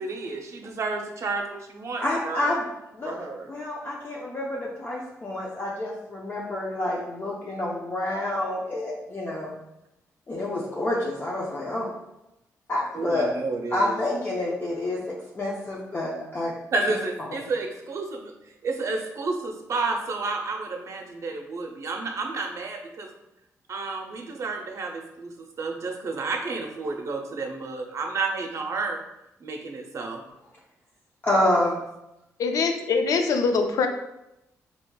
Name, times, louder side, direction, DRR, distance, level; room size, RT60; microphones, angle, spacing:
voice 1, 0.0-2.6 3.0-3.5 12.9-14.0 16.7-18.3 18.6-23.1 23.7-25.3 25.6-29.0 29.4-30.2, right 3 dB, 55° right, 2 dB, 0.6 m, -31 dB
voice 2, 2.0-2.7 2.9-3.2 3.5-9.5 10.3-11.9 12.7-13.3 13.7-15.0 15.3-16.5 31.2-31.8, left 1 dB, 35° left, -4 dB, 0.7 m, -28 dB
voice 3, 32.4-33.9, left 4 dB, 70° left, 5 dB, 0.4 m, -23 dB
4.3 x 2.8 x 2.2 m, 0.88 s
cardioid pair, 70°, 6 cm